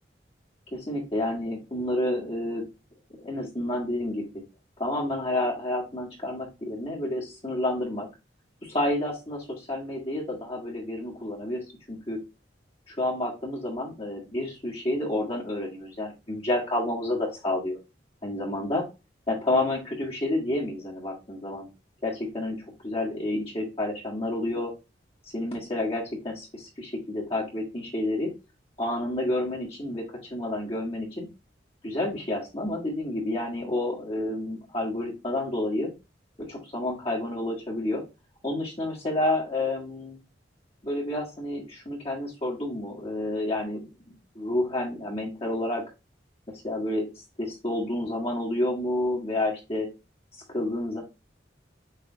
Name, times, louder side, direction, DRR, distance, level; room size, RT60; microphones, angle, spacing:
voice 1, 0.7-2.6 3.2-4.4 4.8-8.1 8.6-12.2 12.9-17.8 18.2-18.9 19.3-21.7 22.0-24.7 25.3-28.3 28.8-31.3 31.8-35.9 36.4-38.0 38.4-40.2 40.8-43.8 44.1-45.8 46.6-47.1 47.4-49.9 50.5-51.0, left 1 dB, 30° left, -5 dB, 1.8 m, -29 dB
6.2 x 3.3 x 2.4 m, 0.26 s
head